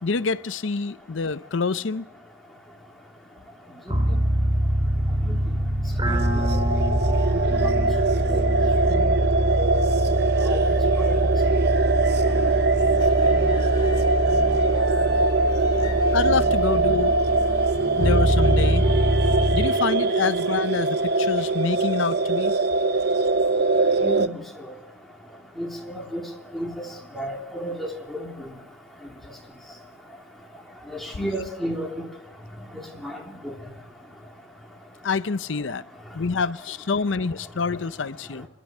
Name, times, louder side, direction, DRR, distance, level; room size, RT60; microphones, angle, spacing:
voice 1, 0.0-2.0 16.1-17.2 18.0-18.9 19.5-22.6 35.0-35.8 36.1-38.5, left 4 dB, 90° left, 0.7 m, -26 dB
sound 1, 3.9-19.7, equal, 25° right, 2.7 m, -24 dB
voice 2, 6.0-6.5 7.8-7.9 8.3-8.4 8.9-9.0 9.6-9.7 10.4-10.6 11.0-11.2 24.0-24.3 25.6-26.2 26.5-26.9 27.1-28.3 30.9-32.0 32.7-33.2 33.4-33.5, equal, ahead, 3.1 m, -32 dB
sound 2, 6.1-24.3, right 3 dB, 60° right, 0.7 m, -22 dB
sound 3, 12.1-19.5, right 1 dB, 25° left, 4.6 m, -38 dB
26.5 x 12.0 x 9.1 m
head